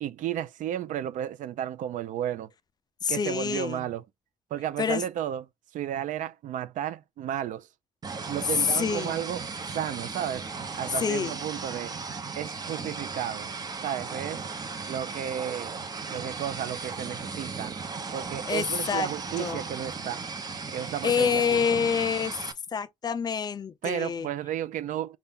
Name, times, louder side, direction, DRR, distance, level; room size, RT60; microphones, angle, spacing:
voice 1, 0.0-2.5 3.1-4.0 4.5-5.4 5.7-7.7 8.3-9.4 9.7-10.5 10.7-12.0 12.3-13.5 13.8-14.4 14.9-15.7 16.1-17.8 18.1-20.2 20.7-21.6 23.8-25.2, right 10 dB, 80° right, 0.5 m, -33 dB
voice 2, 3.0-3.8 4.8-5.0 8.6-9.2 11.0-11.3 18.5-19.1 19.4-19.6 20.8-22.4 22.7-24.3, left 6 dB, 30° left, 0.4 m, -27 dB
sound 1, 8.0-22.5, right 4 dB, 30° right, 0.8 m, -36 dB
5.5 x 2.4 x 3.6 m
cardioid pair, 155°, 13 cm